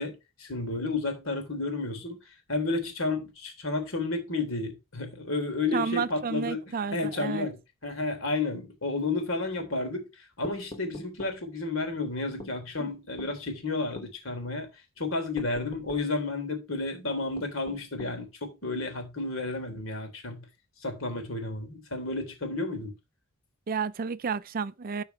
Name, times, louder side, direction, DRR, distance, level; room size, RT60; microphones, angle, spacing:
voice 1, 0.0-2.2 2.5-6.6 6.9-7.6 7.8-10.1 10.4-14.7 15.0-20.4 20.8-22.9, left 3 dB, 70° left, 3.4 m, -31 dB
voice 2, 5.7-7.5 12.8-12.9 23.7-25.0, right 5 dB, 45° right, 0.5 m, -31 dB
sound 1, 10.4-11.4 12.4-12.6 13.2-13.4 14.0-14.1 15.4-16.1 17.4-18.2, left 1 dB, 25° left, 1.0 m, -43 dB
12.5 x 4.7 x 4.5 m
head